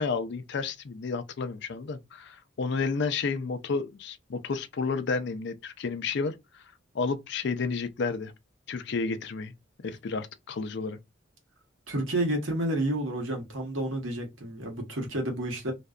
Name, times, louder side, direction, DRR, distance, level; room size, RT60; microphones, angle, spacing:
voice 1, 0.0-6.3 6.9-8.3 8.7-9.5 9.8-11.0, left 4 dB, 60° left, 0.4 m, -31 dB
voice 2, 11.9-15.7, right 1 dB, 75° right, 1.0 m, -30 dB
2.5 x 2.2 x 2.2 m
head